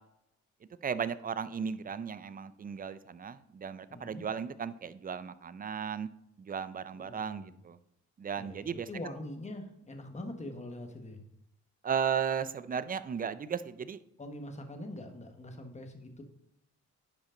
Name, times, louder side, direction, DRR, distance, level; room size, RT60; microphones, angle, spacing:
voice 1, 0.8-6.1 6.4-7.8 8.2-8.9 11.8-14.0, right 7 dB, 30° right, 15 dB, 0.5 m, -35 dB
voice 2, 3.9-4.2 6.9-7.6 8.4-11.2 14.2-16.2, left 1 dB, 25° left, 5 dB, 1.4 m, -43 dB
10.0 x 5.2 x 3.8 m, 0.81 s
cardioid pair, 90°, 30 cm